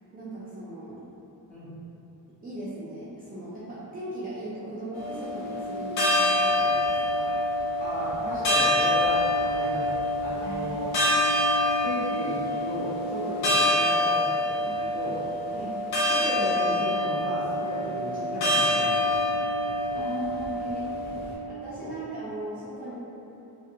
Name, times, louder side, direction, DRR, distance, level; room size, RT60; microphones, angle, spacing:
voice 1, 0.1-1.0 2.4-7.3 10.4-10.7 15.5-15.8 19.9-22.9, right 1 dB, 25° right, -12 dB, 0.4 m, -38 dB
sound 1, 4.9-21.3, left 1 dB, 75° left, 0.8 m, -26 dB
voice 2, 7.8-10.9 11.8-15.3 16.1-19.2 19.6-19.9 21.2-21.3 21.8-21.9, equal, 20° left, -10 dB, 0.8 m, -35 dB
2.7 x 2.4 x 2.7 m, 3.0 s
wide cardioid pair, 165°, 38 cm